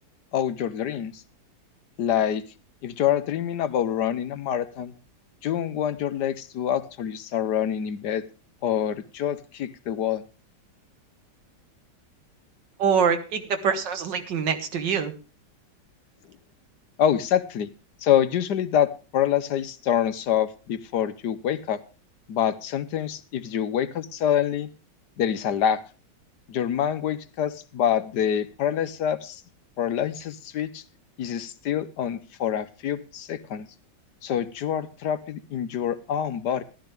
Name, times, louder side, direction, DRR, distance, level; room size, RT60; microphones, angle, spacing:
voice 1, 0.3-1.2 2.0-2.4 2.8-4.9 5.4-8.2 8.6-10.2 17.0-17.7 18.0-21.8 22.3-24.7 25.2-25.8 26.5-29.4 29.8-30.8 31.2-33.7 34.2-36.6, left 9 dB, 70° left, 13 dB, 1.4 m, -26 dB
voice 2, 12.8-15.1, right 6 dB, 85° right, 8 dB, 2.0 m, -24 dB
13.5 x 12.0 x 3.4 m, 0.33 s
omnidirectional pair, 1.9 m